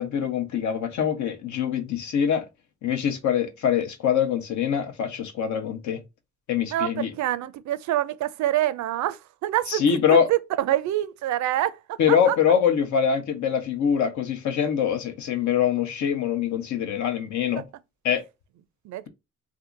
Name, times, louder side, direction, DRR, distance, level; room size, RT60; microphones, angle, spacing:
voice 1, 0.0-2.5 2.8-6.0 6.5-7.1 9.7-10.3 12.0-17.7 18.0-18.2, left 8 dB, 70° left, 0.8 m, -24 dB
voice 2, 6.7-12.4 18.8-19.0, right 13 dB, 70° right, 0.5 m, -26 dB
2.7 x 2.4 x 3.7 m
cardioid pair, 90°, 30 cm